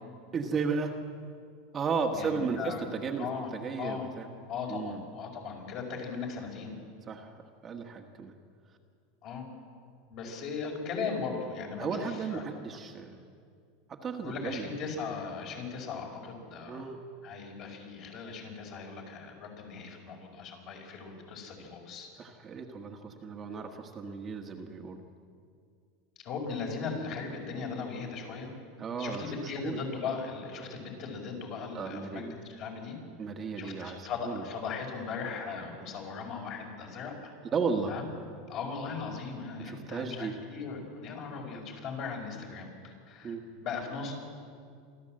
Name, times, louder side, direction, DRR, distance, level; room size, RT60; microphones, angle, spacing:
voice 1, 0.3-0.9 1.7-3.3 3.5-4.3 4.7-5.0 7.1-7.3 7.6-8.3 11.8-13.2 13.9-14.7 16.7-17.0 22.2-25.0 28.8-29.2 29.6-29.7 31.7-32.3 33.2-34.4 37.5-37.9 39.6-40.3 43.2-43.4, right 5 dB, 25° right, 3 dB, 1.5 m, -34 dB
voice 2, 2.1-2.8 3.2-3.5 3.8-4.1 4.5-6.7 9.2-9.5 10.1-12.4 14.2-16.9 17.2-22.1 26.2-28.5 28.9-33.0 33.5-37.1 37.9-38.0 38.5-44.1, left 5 dB, 45° left, 1 dB, 5.1 m, -38 dB
27.0 x 12.5 x 7.7 m, 2.3 s
supercardioid pair, 140°, 0 cm